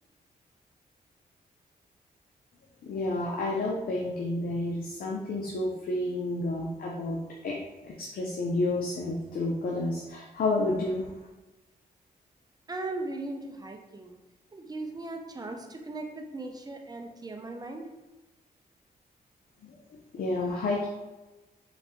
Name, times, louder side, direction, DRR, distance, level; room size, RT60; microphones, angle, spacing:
voice 1, 2.8-7.2 7.4-7.6 7.8-11.0 19.6-19.7 20.1-20.9, left 2 dB, 65° left, -2 dB, 0.6 m, -30 dB
voice 2, 12.7-14.2 14.5-17.9, right 2 dB, 25° right, 3 dB, 0.6 m, -38 dB
4.0 x 2.7 x 3.4 m, 1.1 s
cardioid pair, 85°, 16 cm